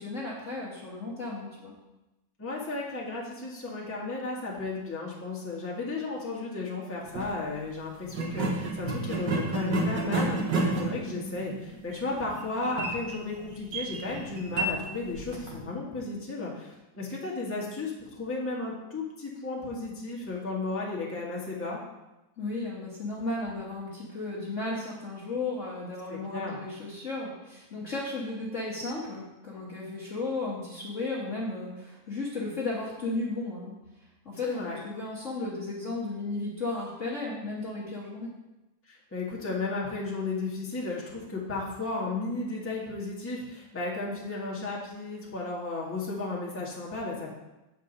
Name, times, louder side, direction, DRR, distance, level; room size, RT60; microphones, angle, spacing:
voice 1, 0.0-1.7 22.4-33.7 34.2-38.3, left 2 dB, 40° left, -5 dB, 1.3 m, -34 dB
voice 2, 2.4-21.8 26.1-26.6 34.4-34.8 38.8-47.3, left 3 dB, 5° left, -4 dB, 1.3 m, -34 dB
sound 1, 7.0-7.3 8.1-15.6, right 2 dB, 55° right, 1.9 m, -31 dB
8.2 x 5.2 x 5.4 m, 0.99 s
omnidirectional pair, 2.4 m